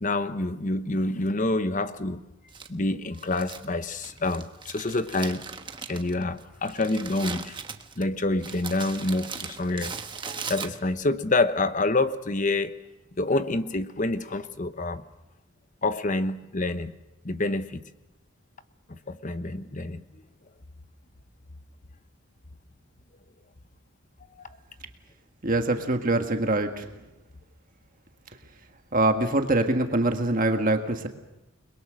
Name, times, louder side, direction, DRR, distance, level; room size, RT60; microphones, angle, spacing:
voice 1, 0.0-2.2 2.7-5.4 5.9-7.6 8.0-10.0 10.3-12.7 13.2-15.0 15.8-16.9 17.2-17.8 18.9-20.2 24.4-24.5, left 2 dB, 35° left, 11 dB, 1.0 m, -27 dB
Crumpling crinkling, 2.5-11.1, right 5 dB, 25° right, 1.2 m, -39 dB
voice 2, 25.4-26.9 28.9-31.1, right 2 dB, 40° right, 5 dB, 1.6 m, -24 dB
29.5 x 22.0 x 6.4 m, 0.98 s
head